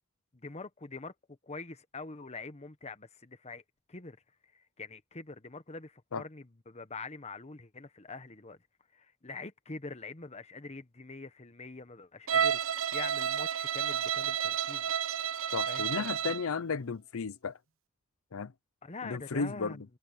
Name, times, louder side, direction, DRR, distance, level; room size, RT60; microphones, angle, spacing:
voice 1, 0.3-3.6 3.9-4.2 4.4-8.6 8.9-14.9 15.7-16.1 18.8-19.8, left 3 dB, 30° left, 1.1 m, -44 dB
Bowed string instrument, 12.3-16.5, right 8 dB, 65° right, 0.8 m, -31 dB
voice 2, 15.5-17.6 18.3-18.5 19.0-19.8, left 5 dB, 75° left, 0.7 m, -34 dB
head